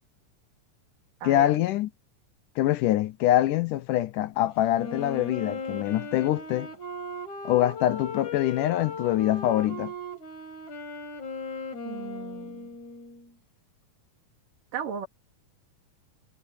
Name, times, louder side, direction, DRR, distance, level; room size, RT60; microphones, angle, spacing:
voice 1, 1.2-1.9 2.6-6.7 7.4-9.9, left 14 dB, 75° left, 2.3 m, -24 dB
Wind instrument woodwind instrument, 4.7-13.3, left 2 dB, 55° left, 6.7 m, -37 dB
voice 2, 11.9-12.7 14.7-15.1, right 8 dB, 75° right, 4.3 m, -36 dB
omnidirectional pair, 3.9 m